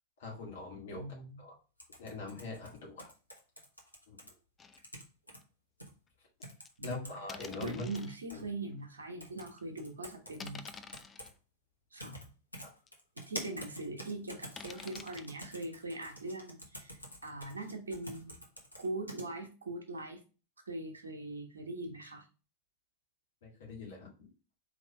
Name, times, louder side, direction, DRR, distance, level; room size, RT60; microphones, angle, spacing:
voice 1, 0.2-1.0 1.4-1.5 2.0-3.1 4.1-4.3 6.8-8.0 8.3-8.4 12.6-12.7 23.4-24.3, left 3 dB, 60° left, -2 dB, 1.9 m, -43 dB
voice 2, 1.0-1.4 6.8-7.1 7.6-10.6 11.9-12.2 13.2-17.0 17.2-18.3 18.8-20.2 20.7-22.2, right 2 dB, 75° right, 3 dB, 1.1 m, -41 dB
sound 1, 1.8-4.3 4.7-5.4 5.8-5.9 6.4-7.1 7.4-8.4 9.2-9.5 9.8-11.3 12.0-12.2 12.5-19.2, equal, 85° left, 1.0 m, -47 dB
sound 2, 4.6-4.8 5.4-5.5 6.4-6.7 7.3-8.2 8.8-8.9 9.4-9.6 10.4-11.3 12.0-12.1 12.6-12.7 12.9-13.0 14.6-15.3, left 5 dB, 20° left, 0.3 m, -48 dB
4.4 x 3.6 x 3.1 m, 0.34 s
figure-of-eight pair, 90°, 0 cm